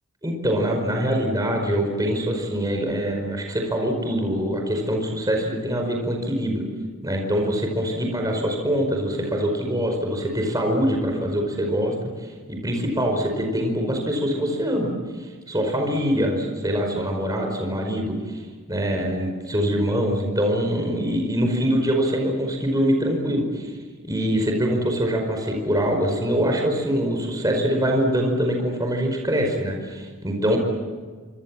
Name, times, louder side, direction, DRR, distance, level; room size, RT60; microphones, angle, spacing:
voice 1, 0.2-6.7 7.0-12.1 12.5-14.9 15.5-18.4 18.7-23.7 24.1-30.6, equal, 15° right, 2 dB, 4.9 m, -24 dB
26.5 x 26.5 x 7.5 m, 1.5 s
head